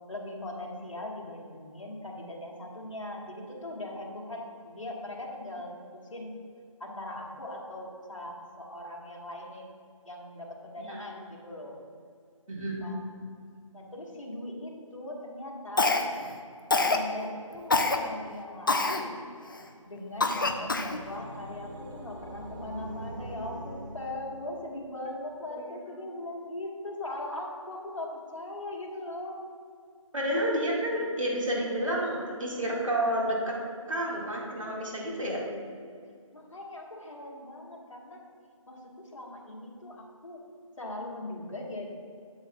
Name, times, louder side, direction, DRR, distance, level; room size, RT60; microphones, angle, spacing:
voice 1, 0.1-6.4 6.8-9.7 10.0-11.8 12.8-13.0 13.7-16.0 16.8-19.2 19.9-29.4 36.3-38.2 38.7-40.4 40.8-41.9, left 1 dB, 65° left, -2 dB, 1.6 m, -40 dB
voice 2, 12.5-12.9 25.5-25.6 30.1-33.5 33.9-35.4, right 1 dB, 70° right, -3 dB, 1.8 m, -30 dB
Cough, 15.8-16.3 16.7-17.1 17.7-18.0 18.7-19.0 19.5-19.6 20.2-21.0, left 3 dB, 40° left, 0.4 m, -25 dB
sound 1, 20.2-24.8, right 1 dB, 35° right, 1.4 m, -44 dB
7.9 x 7.8 x 2.3 m, 2.2 s
figure-of-eight pair, 155°, 17 cm